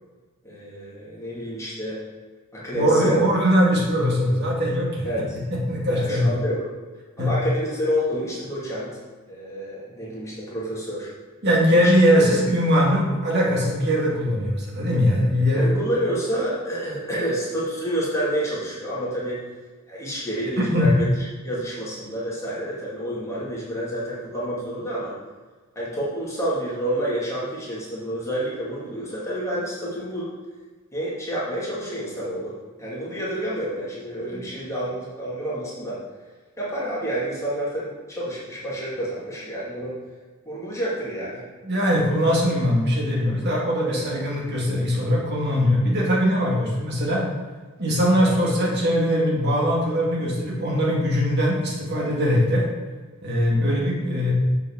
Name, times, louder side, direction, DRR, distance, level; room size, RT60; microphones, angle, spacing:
voice 1, 0.4-2.0 2.5-3.2 5.0-5.4 5.9-6.6 7.2-9.0 9.3-11.1 11.8-11.9 15.5-19.4 19.9-21.1 21.4-25.2 25.8-30.3 30.9-36.0 36.6-40.0 40.4-41.4 43.9-44.1, equal, 15° left, -8 dB, 2.3 m, -29 dB
voice 2, 2.7-5.1 5.5-6.3 7.2-7.3 11.4-15.7 20.7-20.9 34.3-34.4 41.6-47.2 47.8-52.7 53.2-54.3, equal, 50° right, -3 dB, 2.5 m, -21 dB
6.7 x 6.1 x 7.2 m, 1.4 s
head